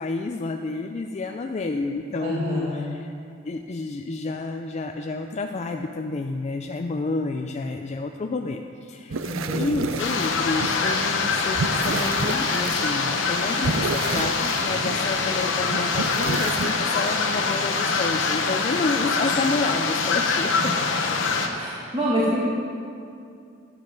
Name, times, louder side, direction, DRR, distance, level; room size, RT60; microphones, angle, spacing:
voice 1, 0.0-3.1 3.4-9.3 9.6-20.7, left 3 dB, 35° left, 4 dB, 0.4 m, -30 dB
voice 2, 2.2-2.8 9.2-9.9 21.5-22.4, equal, 30° right, -6 dB, 1.3 m, -26 dB
sound 1, 9.1-16.7, right 4 dB, 85° right, 0.5 m, -31 dB
sound 2, 10.0-21.5, left 4 dB, 70° left, 0.9 m, -24 dB
12.0 x 7.3 x 5.2 m, 2.5 s
head